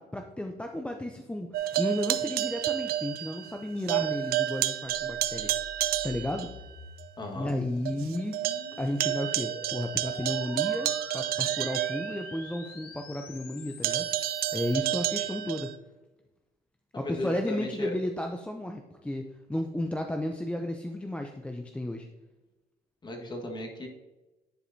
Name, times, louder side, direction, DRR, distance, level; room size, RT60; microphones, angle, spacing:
voice 1, 0.0-5.5 5.8-6.5 7.4-8.4 8.8-14.1 14.5-15.7 17.0-22.1, left 1 dB, 5° left, 3 dB, 0.5 m, -33 dB
sound 1, 1.5-3.6 3.9-6.5 7.0-7.1 7.5-7.6 7.8-12.6 13.8-15.7, right 12 dB, 65° right, 0.5 m, -30 dB
sound 2, 4.8-14.8, left 6 dB, 65° left, 0.9 m, -47 dB
voice 2, 7.2-7.5 16.9-17.9 23.0-23.9, left 2 dB, 25° left, 1 dB, 1.5 m, -35 dB
10.0 x 4.8 x 2.7 m, 1.1 s
cardioid pair, 110°, 17 cm